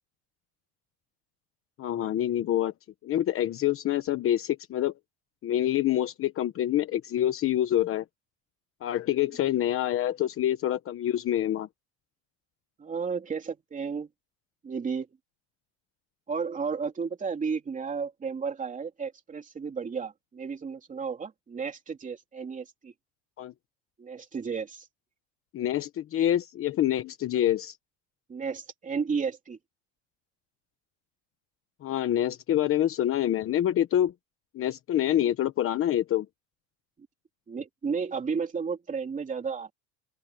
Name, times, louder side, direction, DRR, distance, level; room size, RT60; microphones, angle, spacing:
voice 1, 1.8-2.7 3.0-4.9 5.4-8.0 8.8-11.7 23.4-23.5 25.5-27.8 31.8-34.1 34.5-36.3, left 12 dB, 35° left, 1.1 m, -26 dB
voice 2, 12.8-14.1 14.6-15.1 16.3-22.9 24.0-24.9 28.3-29.6 37.5-39.7, right 5 dB, 20° right, 3.2 m, -33 dB
open air
cardioid pair, 160°, 40 cm